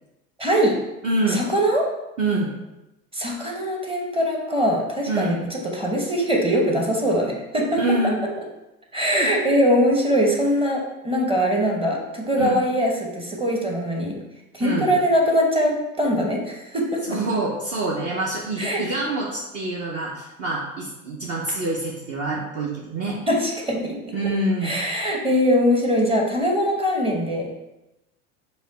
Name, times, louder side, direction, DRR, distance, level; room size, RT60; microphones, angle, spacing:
voice 1, 0.4-0.8 1.3-1.9 3.1-7.8 8.9-14.2 14.5-17.2 18.6-18.8 23.3-24.0 24.6-27.5, equal, 15° right, 0 dB, 0.9 m, -22 dB
voice 2, 1.0-1.4 2.2-2.5 5.1-5.4 7.7-8.2 9.1-9.3 12.4-12.6 14.6-14.9 17.1-23.2 24.1-24.7, right 2 dB, 35° right, -4 dB, 0.8 m, -26 dB
5.0 x 2.2 x 4.0 m, 0.95 s
hypercardioid pair, 90°, 41 cm